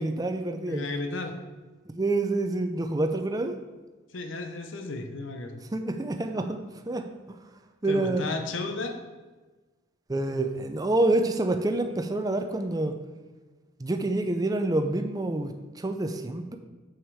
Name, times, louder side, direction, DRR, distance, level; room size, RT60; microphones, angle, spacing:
voice 1, 0.0-0.9 1.9-3.6 5.7-7.4 7.8-8.3 10.1-13.0 13.8-16.6, right 2 dB, 20° right, 6 dB, 0.5 m, -27 dB
voice 2, 0.7-1.3 4.1-5.6 7.8-8.9, left 3 dB, 70° left, 5 dB, 0.8 m, -33 dB
7.3 x 5.9 x 4.8 m, 1.3 s
head